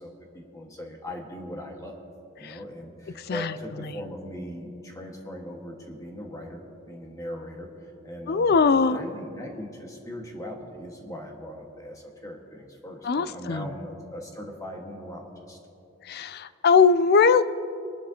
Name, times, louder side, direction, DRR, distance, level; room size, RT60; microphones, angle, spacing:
voice 1, 0.0-2.0 2.4-15.6, equal, 15° left, 0 dB, 1.6 m, -39 dB
voice 2, 8.3-9.0 13.0-13.7 16.1-17.4, left 5 dB, 50° left, 14 dB, 0.4 m, -20 dB
24.0 x 12.0 x 2.9 m, 2.8 s
head